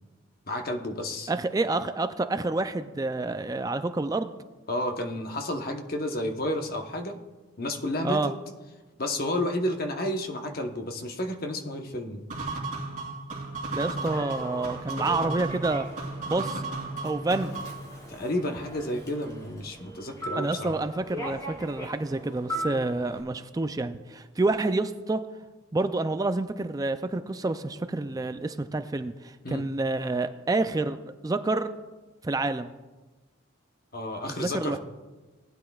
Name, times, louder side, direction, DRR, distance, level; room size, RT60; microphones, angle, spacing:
voice 1, 0.5-1.3 4.7-7.2 7.6-8.3 9.0-12.2 18.1-20.7 29.4-29.6 33.9-34.8, left 1 dB, 45° left, 4 dB, 0.9 m, -31 dB
voice 2, 1.3-4.3 8.0-8.3 13.7-15.9 16.3-16.6 17.0-17.5 20.4-25.2 25.7-31.0 31.2-31.7 32.2-32.7 34.3-34.8, right 2 dB, 15° right, 9 dB, 0.3 m, -28 dB
sound 1, 12.3-17.9, right 3 dB, 40° right, 3.0 m, -34 dB
Human voice / Subway metro underground, 13.8-23.2, right 1 dB, 15° left, 2.0 m, -40 dB
18.5 x 9.7 x 2.3 m, 1.2 s
head